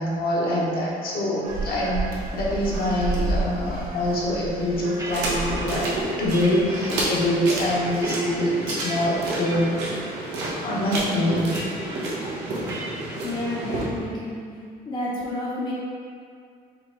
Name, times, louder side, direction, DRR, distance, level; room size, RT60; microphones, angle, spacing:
voice 1, 0.0-2.0 2.3-9.7 10.6-11.5, left 1 dB, 60° left, -5 dB, 1.2 m, -25 dB
sound 1, 1.4-8.0, right 2 dB, 60° right, 1.1 m, -32 dB
sound 2, 4.6-5.8 6.3-6.8 7.5-9.0 9.4-9.8 10.2-10.5 11.5-12.1 12.7-13.1, right 2 dB, 20° right, 0.7 m, -38 dB
sound 3, 5.1-13.8, right 1 dB, 85° right, 1.0 m, -30 dB
voice 2, 13.2-14.4 14.9-15.7, left 1 dB, 25° left, -6 dB, 0.8 m, -30 dB
5.2 x 3.1 x 3.0 m, 2.3 s
cardioid pair, 110°, 17 cm